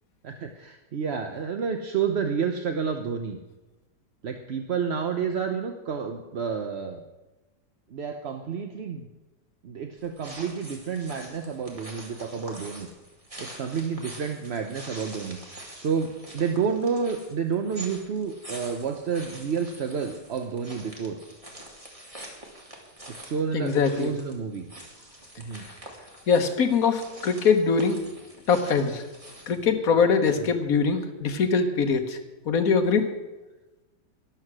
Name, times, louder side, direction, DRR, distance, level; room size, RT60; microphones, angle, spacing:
voice 1, 0.2-3.4 4.2-7.0 7.9-9.1 9.6-12.9 13.4-21.2 23.2-24.7 25.4-25.7, right 6 dB, 50° right, 5 dB, 0.8 m, -30 dB
sound 1, 10.0-29.7, right 1 dB, 20° right, 2.3 m, -45 dB
voice 2, 23.5-24.1 26.3-28.0 28.5-29.0 29.5-32.2 32.4-33.1, left 5 dB, 55° left, 6 dB, 1.6 m, -22 dB
13.0 x 11.5 x 6.1 m, 1.1 s
omnidirectional pair, 1.9 m